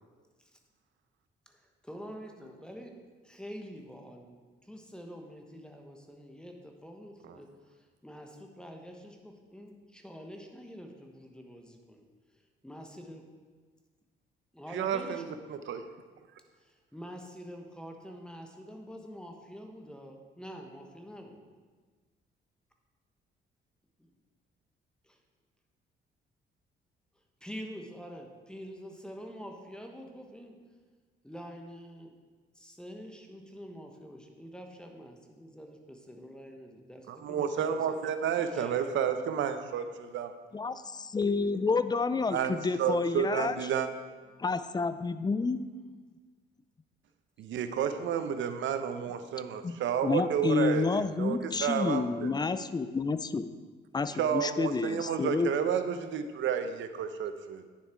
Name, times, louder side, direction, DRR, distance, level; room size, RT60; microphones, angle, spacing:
voice 1, 1.5-3.0 3.2-12.0 12.3-13.3 14.5-15.4 16.6-21.4 24.0-24.1 25.0-25.2 27.1-30.6 31.2-32.1 32.5-38.9, equal, 5° left, 3 dB, 1.3 m, -46 dB
voice 2, 14.7-15.2 15.5-15.8 37.1-40.3 42.3-43.9 47.4-52.3 54.2-57.6, right 8 dB, 75° right, 9 dB, 0.8 m, -31 dB
voice 3, 40.5-43.6 44.4-45.7 49.6-53.5 53.9-55.5, left 4 dB, 20° left, 13 dB, 0.5 m, -29 dB
9.5 x 7.2 x 4.6 m, 1.4 s
cardioid pair, 90°, 20 cm